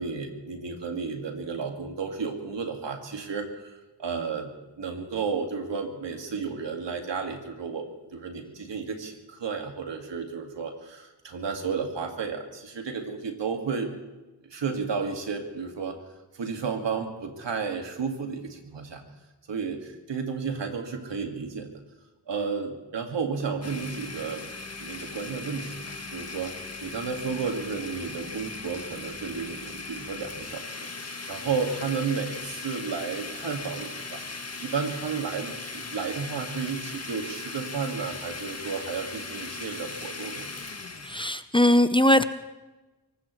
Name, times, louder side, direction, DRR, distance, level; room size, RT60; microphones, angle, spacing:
voice 1, 0.0-13.9 14.5-16.0 16.3-19.0 19.5-21.7 22.3-24.5 24.8-34.2 34.6-40.5, right 5 dB, 85° right, 4 dB, 2.1 m, -32 dB
Domestic sounds home sounds, 23.6-41.2, left 3 dB, 35° left, 1.6 m, -38 dB
voice 2, 41.1-42.2, left 1 dB, 10° left, 11 dB, 0.8 m, -20 dB
23.5 x 19.5 x 3.2 m, 1.1 s
cardioid pair, 55°, 42 cm